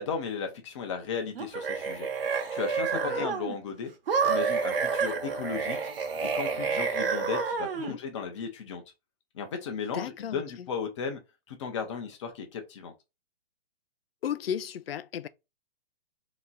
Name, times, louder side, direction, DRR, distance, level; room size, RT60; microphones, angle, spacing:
voice 1, 0.0-2.1 2.5-3.9 4.2-5.8 6.2-8.8 9.3-11.2 11.5-12.9, left 6 dB, 30° left, 0.8 m, -35 dB
sound 1, 1.3-3.6 4.1-8.0, right 5 dB, 65° right, 1.1 m, -29 dB
voice 2, 2.9-3.3 7.8-8.0 9.9-10.7 14.2-15.3, left 9 dB, 70° left, 0.5 m, -35 dB
3.5 x 3.0 x 3.9 m
hypercardioid pair, 165°, 31 cm